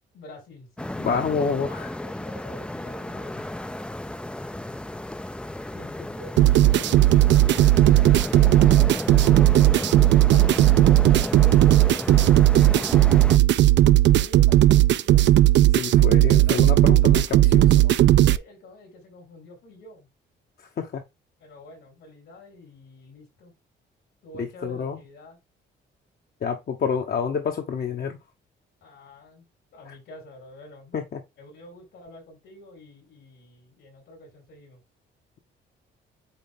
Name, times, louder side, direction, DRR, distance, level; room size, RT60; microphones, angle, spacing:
voice 1, 0.1-1.0 1.6-3.6 5.7-7.3 8.0-13.2 14.1-15.3 16.2-16.6 17.4-20.1 21.4-23.5 24.2-25.4 28.8-31.0 31.4-34.8, left 1 dB, 80° left, 4.3 m, -47 dB
sound 1, 0.8-13.4, left 1 dB, 5° left, 0.4 m, -33 dB
voice 2, 1.0-1.9 15.8-17.7 20.8-21.0 24.4-25.0 26.4-28.2 30.9-31.2, left 6 dB, 50° left, 1.0 m, -28 dB
sound 2, 6.4-18.4, right 14 dB, 65° right, 0.5 m, -16 dB
8.4 x 3.3 x 3.7 m
cardioid pair, 90°, 20 cm